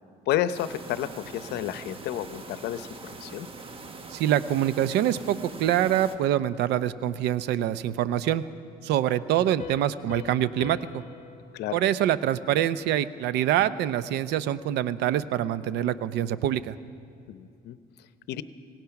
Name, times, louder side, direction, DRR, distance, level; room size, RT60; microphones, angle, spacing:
voice 1, 0.3-3.5 11.5-11.8 17.3-17.8 18.3-18.4, left 12 dB, 75° left, 13 dB, 0.8 m, -31 dB
sound 1, 0.5-6.2, right 3 dB, 35° right, 1.5 m, -43 dB
voice 2, 4.1-8.4 8.8-11.0 11.7-16.8, right 11 dB, 80° right, 15 dB, 0.7 m, -25 dB
Piano, 9.6-13.0, left 10 dB, 40° left, 1.6 m, -45 dB
26.0 x 18.0 x 5.9 m, 2.5 s
cardioid pair, 110°, 17 cm